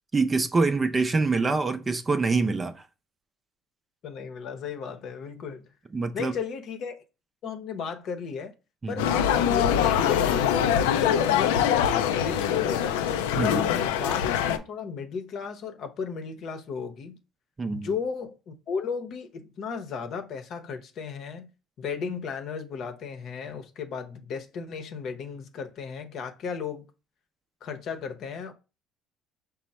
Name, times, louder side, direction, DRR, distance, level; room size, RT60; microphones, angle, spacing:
voice 1, 0.1-2.8 5.9-6.3 8.8-9.1 13.4-13.6 17.6-18.0, right 3 dB, 30° right, 0.5 m, -25 dB
voice 2, 4.0-5.6 6.1-7.0 7.4-8.5 8.9-10.6 11.0-13.0 13.4-14.3 14.6-17.2 17.7-21.5 21.8-26.9 27.6-28.5, left 6 dB, 60° left, 0.7 m, -34 dB
sound 1, 9.0-14.6, left 9 dB, 90° left, 0.3 m, -23 dB
5.3 x 2.1 x 4.1 m
supercardioid pair, 75°, 0 cm